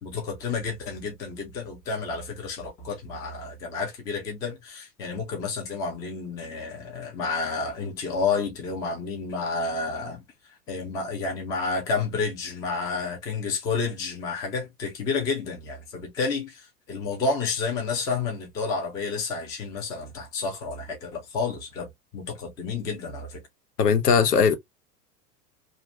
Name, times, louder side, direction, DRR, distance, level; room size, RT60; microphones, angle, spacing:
voice 1, 0.0-10.2 10.7-23.4, left 4 dB, 10° left, 0.3 m, -30 dB
voice 2, 23.8-24.6, left 6 dB, 70° left, 0.8 m, -19 dB
2.6 x 2.5 x 3.0 m
figure-of-eight pair, 90°, 49 cm